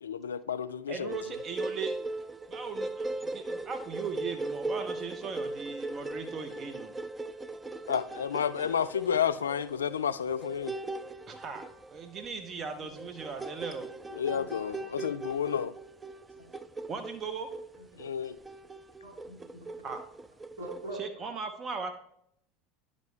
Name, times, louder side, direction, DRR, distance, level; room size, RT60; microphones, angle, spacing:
voice 1, 0.0-1.2 7.9-10.7 14.2-15.7 18.0-18.4, left 8 dB, 80° left, 0.3 m, -31 dB
voice 2, 0.9-1.9 2.2-6.9 11.3-11.6 11.9-13.9 16.9-17.5 19.8-20.0 21.0-21.9, right 5 dB, 35° right, 0.8 m, -38 dB
sound 1, 1.1-20.9, right 2 dB, 15° right, 0.4 m, -39 dB
voice 3, 12.5-12.9 14.3-14.7 16.4-16.5 17.8-18.1 19.0-19.9 20.6-21.0, right 2 dB, 75° right, 2.6 m, -45 dB
10.5 x 5.2 x 3.3 m
hypercardioid pair, 75°, 0 cm